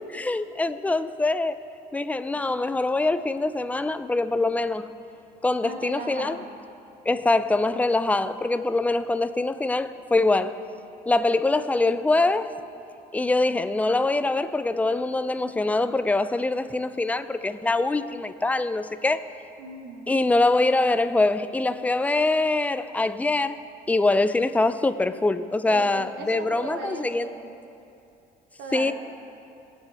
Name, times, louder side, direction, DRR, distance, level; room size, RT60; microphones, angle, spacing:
voice 1, 0.0-1.6 1.9-4.9 5.4-6.4 7.1-10.6 11.1-12.6 13.1-19.2 20.1-23.6 23.9-27.3 28.7-28.9, left 2 dB, 10° left, 12 dB, 0.4 m, -24 dB
voice 2, 5.6-6.5 19.6-20.2 25.7-27.5 28.6-28.9, right 3 dB, 90° right, 3 dB, 1.3 m, -37 dB
18.5 x 8.1 x 3.4 m, 2.7 s
cardioid pair, 110°, 17 cm